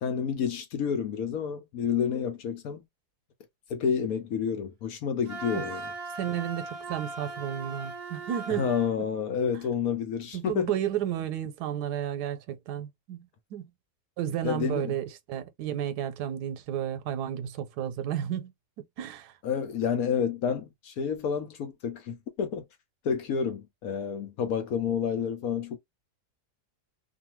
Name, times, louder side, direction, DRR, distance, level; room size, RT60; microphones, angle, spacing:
voice 1, 0.0-2.8 3.7-5.9 8.5-10.7 14.4-14.9 19.4-22.6 23.0-25.8, left 7 dB, 70° left, 1.1 m, -29 dB
Wind instrument woodwind instrument, 5.2-9.0, right 4 dB, 50° right, 0.8 m, -39 dB
voice 2, 6.2-8.7 10.3-13.3 13.5-13.7 14.2-18.5 19.0-19.3, right 10 dB, 85° right, 1.2 m, -32 dB
2.6 x 2.6 x 2.9 m
omnidirectional pair, 1.7 m